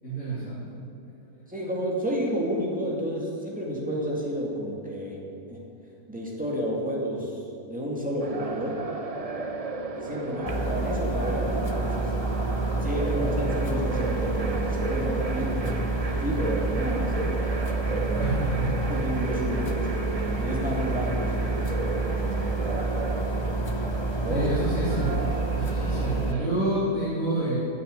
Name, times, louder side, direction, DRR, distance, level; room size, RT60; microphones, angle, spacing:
voice 1, 0.0-1.1 18.1-18.7 24.3-27.6, right 2 dB, 70° left, -10 dB, 3.6 m, -29 dB
voice 2, 1.5-5.2 5.5-5.6 6.1-7.3 7.7-8.8 10.0-12.1 12.8-17.1 17.9-18.4 18.9-23.1 24.2-24.5, equal, 5° right, -3 dB, 2.4 m, -31 dB
sound 1, 8.2-26.5, right 3 dB, 30° right, 0.8 m, -34 dB
sound 2, 10.5-26.3, right 2 dB, 35° left, 0.4 m, -28 dB
9.6 x 9.1 x 9.0 m, 2.5 s
omnidirectional pair, 1.5 m